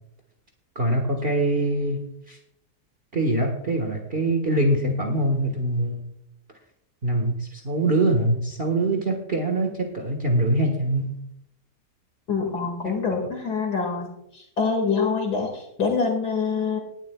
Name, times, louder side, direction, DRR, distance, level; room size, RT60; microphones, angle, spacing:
voice 1, 0.7-2.4 3.1-6.0 7.0-11.1, right 1 dB, 35° right, 2 dB, 1.6 m, -23 dB
voice 2, 12.3-16.8, left 5 dB, 70° left, 1 dB, 2.7 m, -25 dB
19.0 x 12.0 x 2.3 m, 0.76 s
omnidirectional pair, 1.8 m